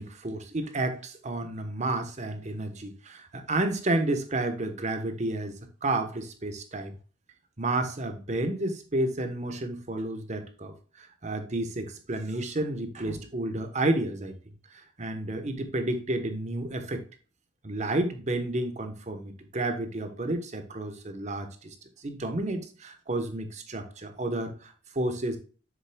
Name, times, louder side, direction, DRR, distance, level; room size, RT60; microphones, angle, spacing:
voice 1, 0.0-5.5 5.8-6.9 7.6-14.3 15.0-17.0 17.6-21.7 22.0-25.4, right 2 dB, 35° right, 7 dB, 1.0 m, -31 dB
7.3 x 6.8 x 2.2 m, 0.38 s
head